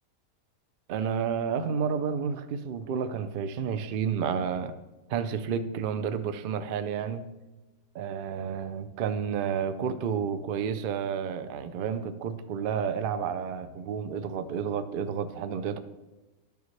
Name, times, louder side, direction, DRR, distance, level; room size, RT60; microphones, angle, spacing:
voice 1, 0.9-4.7 5.1-7.3 7.9-15.8, right 7 dB, 85° right, 10 dB, 0.4 m, -30 dB
12.0 x 7.0 x 3.2 m, 1.1 s
omnidirectional pair, 1.6 m